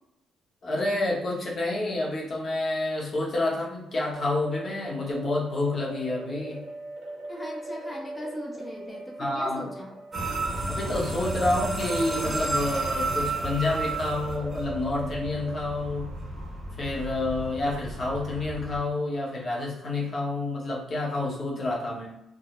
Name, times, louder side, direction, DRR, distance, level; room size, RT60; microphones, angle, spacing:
voice 1, 0.6-6.7 9.2-9.6 10.7-16.2 16.8-22.1, left 2 dB, 50° left, -3 dB, 0.8 m, -29 dB
sound 1, 4.1-15.6, right 2 dB, 80° right, 0.5 m, -39 dB
voice 2, 7.3-9.9 21.5-21.6, equal, 20° left, -1 dB, 0.5 m, -39 dB
sound 2, 10.1-18.8, right 2 dB, 30° right, 0.8 m, -32 dB
2.3 x 2.0 x 2.9 m, 0.88 s
cardioid pair, 90°, 0 cm